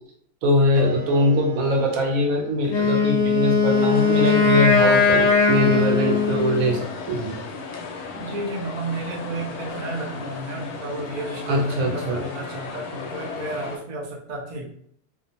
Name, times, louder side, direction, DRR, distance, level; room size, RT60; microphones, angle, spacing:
voice 1, 0.4-7.4 11.5-12.2, left 1 dB, 70° right, 1 dB, 0.9 m, -22 dB
Wind instrument woodwind instrument, 0.7-5.8, right 3 dB, 20° right, 0.8 m, -40 dB
Wind instrument woodwind instrument 2, 2.7-6.8, left 5 dB, 65° left, 0.8 m, -19 dB
sound 1, 3.7-13.8, left 4 dB, 85° left, 1.1 m, -35 dB
voice 2, 8.2-14.7, right 2 dB, 50° right, -3 dB, 0.5 m, -32 dB
2.8 x 2.0 x 2.6 m, 0.64 s
omnidirectional pair, 1.6 m